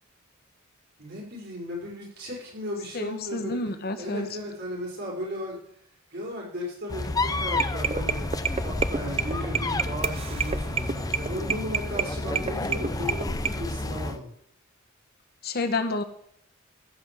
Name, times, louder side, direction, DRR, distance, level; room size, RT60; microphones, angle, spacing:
voice 1, 1.0-5.6 6.1-14.3, equal, 55° right, -3 dB, 5.5 m, -36 dB
voice 2, 2.9-4.3 12.6-12.7 15.4-16.0, left 2 dB, 50° left, 8 dB, 1.1 m, -29 dB
sound 1, 6.9-14.2, left 2 dB, 15° left, 0.5 m, -30 dB
sound 2, 7.5-13.5, right 6 dB, 30° right, 0.5 m, -29 dB
15.0 x 6.1 x 7.7 m, 0.68 s
head